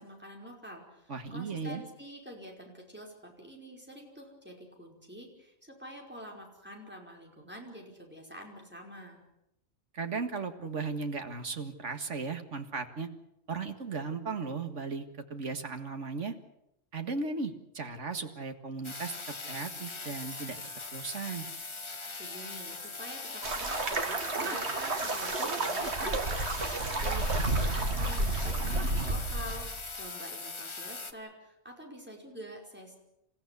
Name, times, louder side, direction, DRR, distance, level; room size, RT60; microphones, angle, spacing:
voice 1, 0.0-9.2 22.2-33.0, equal, 10° right, 0 dB, 5.1 m, -47 dB
voice 2, 1.1-1.8 9.9-13.1 13.5-16.4 16.9-19.2 19.5-20.6 20.9-21.5, right 4 dB, 80° right, 7 dB, 2.1 m, -36 dB
sound 1, 18.8-31.1, left 3 dB, 25° left, 1.1 m, -41 dB
sound 2, 23.4-29.9, right 2 dB, 65° right, 2.2 m, -31 dB
28.0 x 15.0 x 8.4 m, 0.82 s
omnidirectional pair, 1.2 m